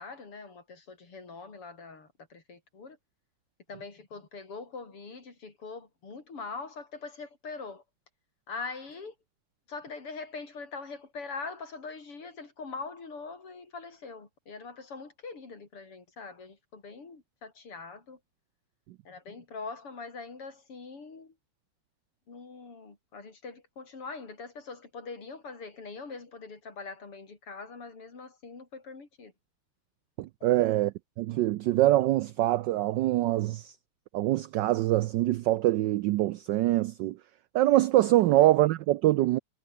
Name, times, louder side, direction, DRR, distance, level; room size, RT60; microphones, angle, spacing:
voice 1, 0.0-3.0 3.7-7.8 8.5-9.2 9.7-18.2 19.1-21.3 22.3-29.3 30.4-30.7 38.2-38.4, left 4 dB, 85° left, 5.5 m, -43 dB
voice 2, 30.2-33.7 34.1-37.2 37.5-39.4, right 15 dB, 80° right, 1.0 m, -24 dB
omnidirectional pair, 2.4 m